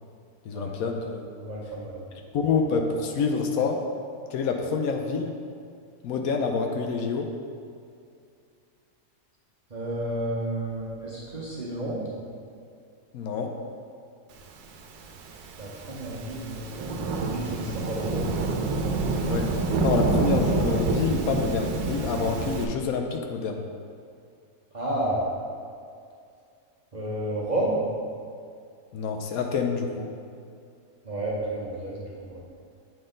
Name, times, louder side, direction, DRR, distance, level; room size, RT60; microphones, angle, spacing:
voice 1, 0.5-1.2 2.3-3.8 4.3-5.3 6.0-7.3 13.1-13.5 19.2-19.5 19.8-23.6 28.9-30.1, left 5 dB, 75° left, 3 dB, 1.0 m, -27 dB
voice 2, 1.4-2.0 9.7-12.1 15.6-18.4 24.7-25.2 26.9-27.9 31.0-32.4, right 1 dB, 40° right, -6 dB, 0.7 m, -31 dB
Thunderstorm / Rain, 14.9-22.6, right 3 dB, 85° right, 1.2 m, -27 dB
7.7 x 3.9 x 3.8 m, 2.3 s
omnidirectional pair, 1.6 m